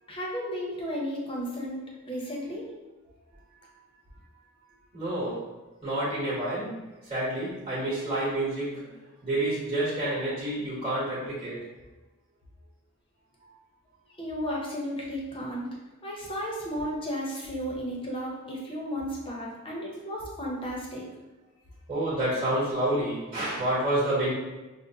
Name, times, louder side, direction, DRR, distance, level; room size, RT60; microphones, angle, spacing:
voice 1, 0.1-2.7 14.2-15.8 16.0-21.1, equal, 25° left, -3 dB, 0.7 m, -34 dB
voice 2, 4.9-5.4 5.8-8.9 9.2-11.6 13.4-13.5 21.9-24.3, right 1 dB, 25° right, -10 dB, 1.1 m, -29 dB
5.1 x 2.1 x 2.7 m, 1.1 s
head